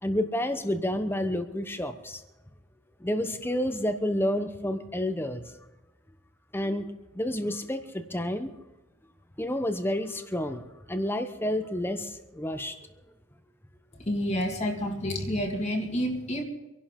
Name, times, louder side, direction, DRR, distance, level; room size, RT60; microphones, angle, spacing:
voice 1, 0.0-2.2 3.0-5.4 6.5-6.9 7.1-8.5 9.4-12.8, left 1 dB, 10° left, 8 dB, 1.0 m, -30 dB
voice 2, 14.0-16.4, equal, 35° left, 2 dB, 2.0 m, -29 dB
26.0 x 11.5 x 3.8 m, 1.0 s
head